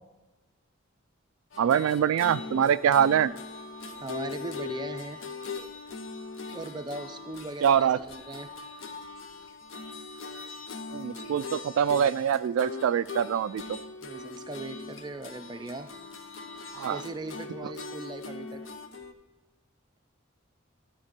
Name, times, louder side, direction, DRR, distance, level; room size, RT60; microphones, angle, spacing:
sound 1, 1.5-19.1, left 4 dB, 70° left, 0.8 m, -41 dB
voice 1, 1.6-3.3 7.6-8.0 10.9-13.8 16.7-17.0, right 8 dB, 85° right, 14 dB, 0.3 m, -24 dB
voice 2, 4.0-5.2 6.5-8.5 14.0-15.9 16.9-18.6, right 2 dB, 20° right, 8 dB, 0.5 m, -39 dB
12.5 x 4.3 x 5.9 m, 1.1 s
head